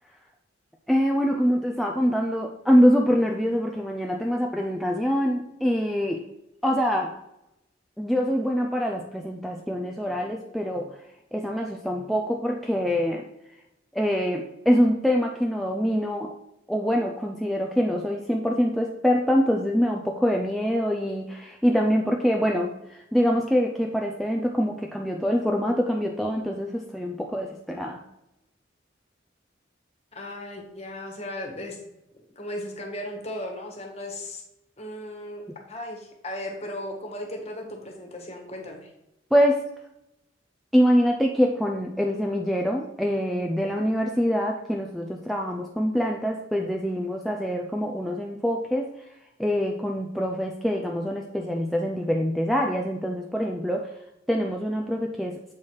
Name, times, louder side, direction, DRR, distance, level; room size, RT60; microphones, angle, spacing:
voice 1, 0.9-6.2 6.6-7.1 8.0-11.0 11.3-13.2 13.9-16.3 16.7-28.0 39.3-39.6 40.7-48.9 49.4-53.9 54.3-55.4, equal, ahead, 0 dB, 0.4 m, -24 dB
voice 2, 30.1-31.8 32.3-34.4 34.8-38.9, left 1 dB, 35° left, 1 dB, 1.5 m, -36 dB
7.4 x 4.5 x 4.7 m, 0.88 s
head